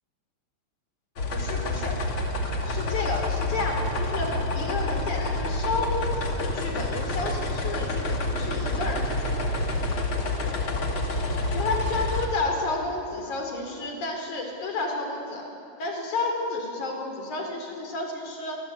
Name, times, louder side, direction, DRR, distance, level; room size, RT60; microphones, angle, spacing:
sound 1, 1.2-12.3, left 2 dB, 45° left, 3.2 m, -28 dB
voice 1, 1.3-2.0 2.7-9.5 11.5-15.5 15.8-18.6, left 3 dB, 85° left, 3 dB, 5.5 m, -31 dB
27.0 x 24.5 x 8.5 m, 2.8 s
omnidirectional pair, 3.4 m